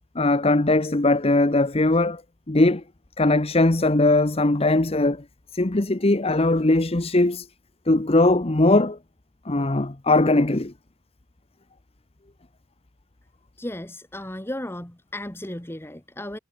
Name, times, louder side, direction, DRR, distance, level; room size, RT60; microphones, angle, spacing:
voice 1, 0.1-2.2 2.5-2.8 3.2-5.2 5.5-7.5 7.9-9.0 9.5-10.7, left 2 dB, 25° left, 0.9 m, -20 dB
voice 2, 13.6-16.4, left 1 dB, 10° left, 1.5 m, -35 dB
head